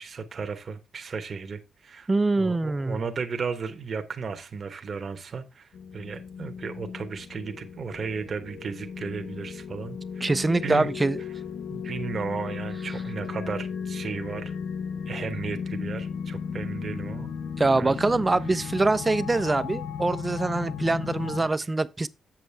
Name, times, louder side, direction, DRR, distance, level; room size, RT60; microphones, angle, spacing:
voice 1, 0.0-2.1 2.4-10.3 10.6-10.9 11.7-14.5 15.1-17.3 17.7-18.0, right 5 dB, 45° right, 1.0 m, -34 dB
voice 2, 2.1-3.0 10.2-11.2 17.6-22.1, right 3 dB, 20° right, 0.4 m, -24 dB
sound 1, 5.7-21.5, left 6 dB, 80° left, 0.6 m, -35 dB
7.6 x 7.2 x 3.3 m
cardioid pair, 125°, 0 cm